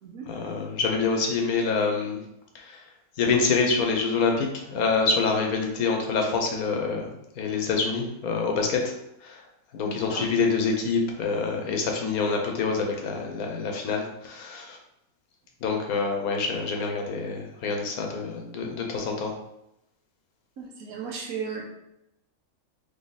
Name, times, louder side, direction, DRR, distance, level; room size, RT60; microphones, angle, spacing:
voice 1, 0.3-2.2 2.5-2.8 3.2-7.1 7.4-8.9 9.2-9.4 9.7-14.8 15.6-19.3, left 4 dB, 75° left, 2 dB, 1.2 m, -26 dB
voice 2, 9.8-10.3 20.6-21.6, right 6 dB, 70° right, -1 dB, 1.3 m, -35 dB
4.0 x 3.0 x 3.9 m, 0.84 s
omnidirectional pair, 1.6 m